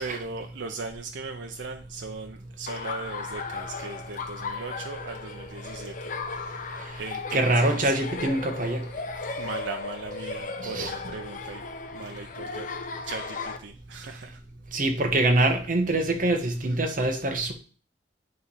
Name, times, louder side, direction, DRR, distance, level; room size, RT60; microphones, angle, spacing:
voice 1, 0.0-6.7 7.0-7.9 9.4-11.6 11.9-12.7 13.0-14.4, right 4 dB, 80° right, 0.6 m, -38 dB
Laughter, 2.7-13.6, left 4 dB, 50° left, 0.8 m, -36 dB
voice 2, 7.3-8.8 10.6-10.9 14.7-17.5, right 2 dB, 45° right, 1.1 m, -24 dB
9.4 x 3.2 x 5.5 m
head